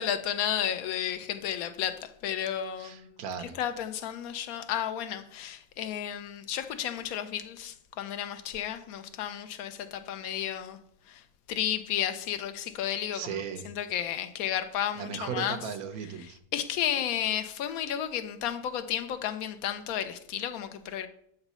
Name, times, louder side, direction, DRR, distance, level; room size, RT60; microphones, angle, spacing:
voice 1, 0.0-3.2 3.6-10.8 11.1-11.2 11.5-15.6 16.5-21.1, left 10 dB, 80° left, 1.1 m, -32 dB
voice 2, 2.8-3.6 13.1-13.7 15.0-16.4, right 7 dB, 85° right, 1.2 m, -37 dB
7.0 x 4.0 x 5.4 m
omnidirectional pair, 1.5 m